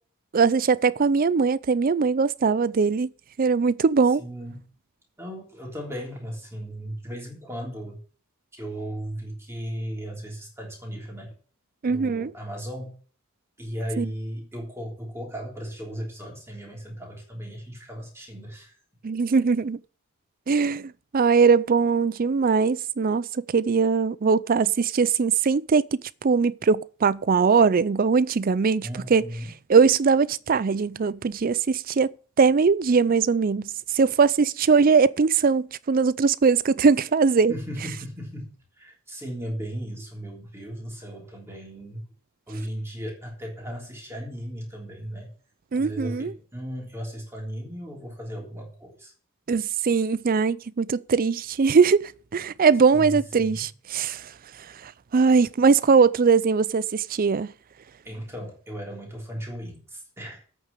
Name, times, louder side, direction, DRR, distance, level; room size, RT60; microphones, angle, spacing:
voice 1, 0.3-3.1 3.4-4.2 11.8-12.3 14.0-14.1 19.0-19.8 20.5-25.8 26.2-29.2 29.7-32.1 32.4-37.5 45.7-46.3 49.5-54.3 54.8-57.5, right 5 dB, 40° right, 0.4 m, -21 dB
voice 2, 4.2-4.6 5.2-8.0 8.6-11.3 11.9-12.9 13.6-18.7 28.8-29.5 37.5-42.1 42.5-45.3 45.8-49.1 52.9-53.6 58.0-60.4, equal, 10° right, 3.3 m, -36 dB
8.7 x 6.4 x 8.2 m
head